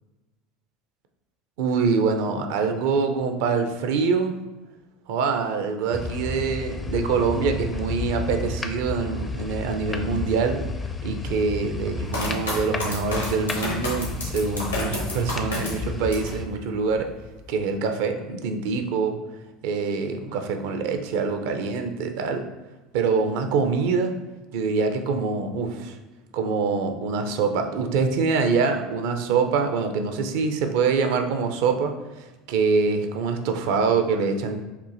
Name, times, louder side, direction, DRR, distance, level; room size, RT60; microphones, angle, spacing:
voice 1, 1.6-4.4 5.1-10.6 11.0-17.1 17.5-19.2 19.6-22.5 22.9-24.1 24.5-26.0 26.3-34.6, right 5 dB, 60° right, 6 dB, 0.5 m, -25 dB
sound 1, 5.9-16.4, left 3 dB, 20° left, 0.4 m, -32 dB
sound 2, 12.1-16.4 16.8-17.5, left 2 dB, 85° left, 1.2 m, -31 dB
6.6 x 2.6 x 2.5 m, 1.1 s
figure-of-eight pair, 70°, 0 cm